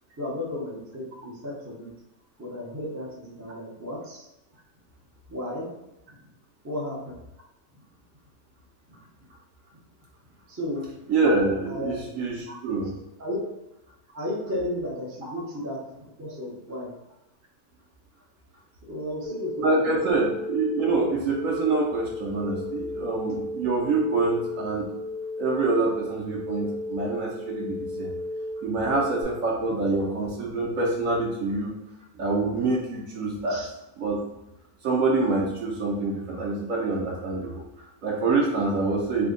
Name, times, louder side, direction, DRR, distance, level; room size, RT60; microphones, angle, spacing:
voice 1, 0.2-1.9 2.4-4.3 5.3-5.7 6.6-7.2 10.5-10.9 11.7-11.9 13.2-13.4 14.1-15.8 16.2-16.9 18.9-20.0 33.5-33.7, left 1 dB, 25° right, -4 dB, 0.3 m, -33 dB
voice 2, 11.1-12.9 19.6-24.9 25.4-28.1 28.6-31.7 32.1-33.6 34.0-34.2 34.8-39.3, right 3 dB, 65° right, -3 dB, 0.9 m, -26 dB
sound 1, 19.2-29.2, left 1 dB, 45° right, 1.1 m, -35 dB
3.4 x 2.1 x 3.7 m, 0.92 s
omnidirectional pair, 1.8 m